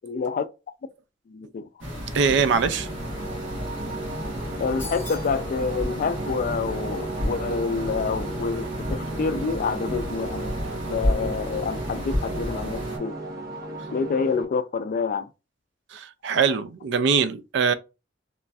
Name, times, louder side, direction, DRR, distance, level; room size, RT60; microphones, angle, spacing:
voice 1, 0.0-0.5 1.3-1.7 4.6-10.6 10.9-13.1 13.9-15.3, left 5 dB, 45° left, 0.3 m, -27 dB
sound 1, 1.8-13.0, equal, 85° right, 1.3 m, -32 dB
voice 2, 2.1-2.9 15.9-17.7, right 5 dB, 70° right, 0.4 m, -22 dB
sound 2, 2.5-14.4, right 2 dB, 50° right, 0.9 m, -35 dB
sound 3, 4.8-5.4, left 3 dB, 10° left, 0.8 m, -39 dB
3.0 x 2.6 x 2.3 m
head